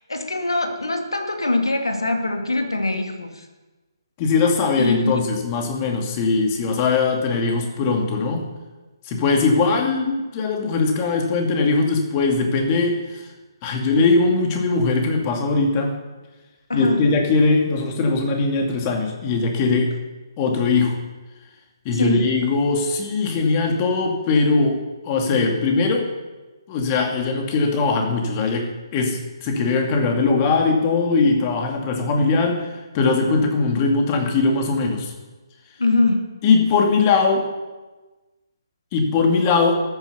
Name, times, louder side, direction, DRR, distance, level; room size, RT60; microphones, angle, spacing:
voice 1, 0.0-3.5 4.8-5.2 16.7-17.1 21.9-22.2 35.8-36.3, left 2 dB, 80° left, 4 dB, 2.5 m, -22 dB
voice 2, 4.2-8.5 9.0-13.3 13.6-15.9 16.7-20.0 20.4-21.0 21.8-26.1 26.7-35.1 36.4-37.5 38.9-39.8, left 4 dB, 25° left, 2 dB, 2.4 m, -20 dB
13.5 x 9.4 x 6.8 m, 1.2 s
figure-of-eight pair, 140°, 2 cm